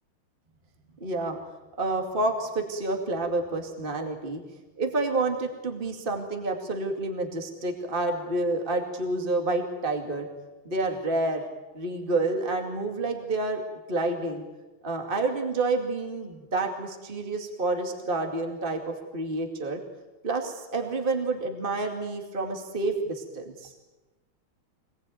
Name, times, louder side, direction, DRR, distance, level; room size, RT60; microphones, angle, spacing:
voice 1, 1.0-1.4 1.8-4.4 4.8-10.3 10.7-11.4 11.7-13.6 13.9-14.4 14.8-19.8 20.2-23.7, right 2 dB, 25° right, 4 dB, 2.5 m, -29 dB
25.0 x 20.0 x 9.3 m, 1.1 s
omnidirectional pair, 2.3 m